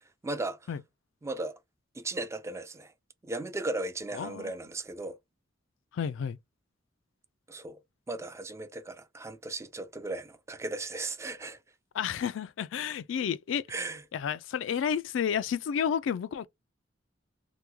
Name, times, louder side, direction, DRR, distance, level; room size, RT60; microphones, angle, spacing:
voice 1, 0.2-0.6 1.2-1.6 1.9-2.9 3.2-5.2 7.5-7.8 8.1-11.6 13.7-14.0, right 2 dB, 15° right, 0.3 m, -36 dB
voice 2, 4.2-4.5 5.9-6.4 11.9-13.6 14.1-16.5, left 8 dB, 70° left, 0.3 m, -31 dB
3.0 x 2.2 x 3.4 m
head